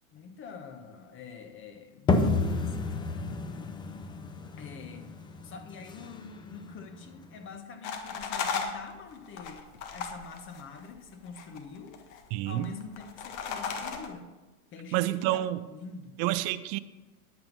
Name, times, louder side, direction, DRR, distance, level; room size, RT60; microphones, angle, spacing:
voice 1, 0.1-3.2 4.6-5.1 5.4-12.0 12.4-14.3 14.7-16.2, left 5 dB, 25° left, 7 dB, 1.2 m, -45 dB
sound 1, 2.1-7.5, left 3 dB, 10° left, 0.5 m, -31 dB
sound 2, 7.8-11.0 11.3-12.2 12.5-14.1, left 6 dB, 50° left, 1.7 m, -35 dB
voice 2, 12.3-12.7 14.9-15.6 16.2-16.8, right 15 dB, 35° right, 12 dB, 0.5 m, -28 dB
10.5 x 8.8 x 5.4 m, 1.2 s
supercardioid pair, 135°, 44 cm